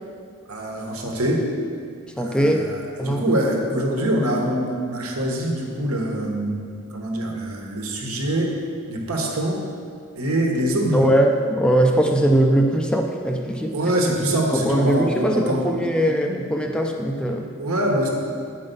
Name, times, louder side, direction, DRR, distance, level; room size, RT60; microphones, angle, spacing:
voice 1, 0.5-1.5 2.2-8.5 8.9-9.7 10.2-11.0 13.7-15.7 17.6-18.1, right 1 dB, 80° right, 0 dB, 1.4 m, -24 dB
voice 2, 2.2-2.7 3.0-3.2 10.9-14.1 14.5-17.5, right 1 dB, 5° left, 2 dB, 0.4 m, -21 dB
9.0 x 5.2 x 5.3 m, 2.2 s
head